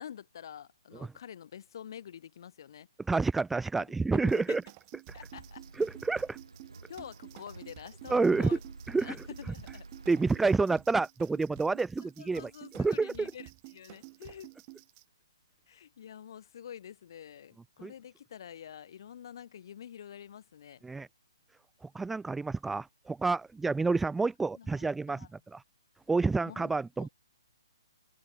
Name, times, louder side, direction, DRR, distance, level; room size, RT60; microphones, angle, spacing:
voice 1, 0.0-2.9 4.1-4.6 5.1-5.6 6.9-8.6 9.0-9.9 12.2-14.5 15.7-20.8 24.5-25.3 26.5-26.7 27.0-27.1, left 9 dB, 55° left, 5.8 m, -47 dB
voice 2, 3.1-4.6 5.8-6.4 8.1-8.5 8.9-9.2 10.1-13.1 17.8-17.9 20.8-21.1 21.8-25.3 25.5-25.6 26.1-27.1, right 3 dB, 5° right, 0.4 m, -29 dB
sound 1, 4.3-15.0, right 34 dB, 30° right, 5.5 m, -51 dB
sound 2, 5.1-10.4, right 3 dB, 85° right, 4.3 m, -50 dB
figure-of-eight pair, 135°, 3 cm